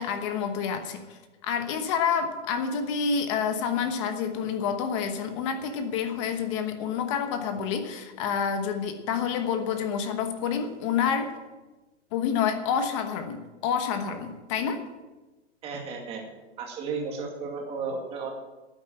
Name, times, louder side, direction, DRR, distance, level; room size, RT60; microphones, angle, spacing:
voice 1, 0.0-11.3 12.1-14.8, left 7 dB, 25° left, 7 dB, 1.1 m, -28 dB
voice 2, 15.6-16.2 16.6-18.3, right 4 dB, 15° right, 1 dB, 2.2 m, -33 dB
12.0 x 9.6 x 7.6 m, 1.1 s
hypercardioid pair, 165°, 36 cm